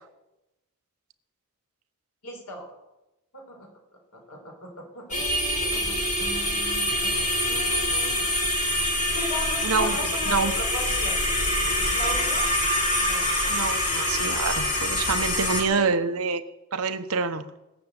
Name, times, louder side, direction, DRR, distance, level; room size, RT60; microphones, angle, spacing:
voice 1, 2.2-2.7 3.3-3.7 4.1-8.1 9.1-11.2 11.9-12.5 13.0-13.6 15.7-15.9, left 1 dB, 75° left, 1 dB, 4.5 m, -37 dB
sound 1, 5.1-15.6, left 1 dB, 35° left, 3.1 m, -25 dB
voice 2, 9.6-10.0 10.3-10.5 13.5-16.4 16.7-17.4, right 4 dB, 70° right, 9 dB, 1.0 m, -26 dB
19.5 x 7.0 x 8.1 m, 0.98 s
head